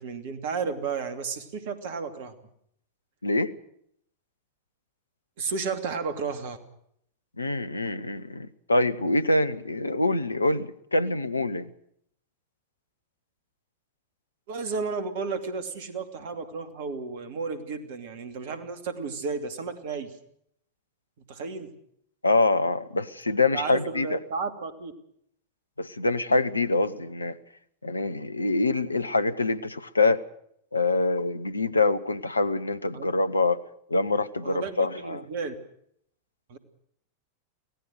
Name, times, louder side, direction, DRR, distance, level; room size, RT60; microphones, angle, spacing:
voice 1, 0.0-2.3 5.4-6.6 14.5-20.1 21.3-21.7 23.5-24.9 32.9-33.1 34.4-35.5 36.5-36.6, right 5 dB, 55° right, 9 dB, 2.8 m, -33 dB
voice 2, 7.4-11.7 22.2-24.2 25.8-27.4 27.8-30.2 30.7-33.6 33.9-35.2, left 2 dB, 80° left, 14 dB, 1.0 m, -25 dB
25.0 x 17.5 x 6.5 m, 0.69 s
figure-of-eight pair, 90°, 0 cm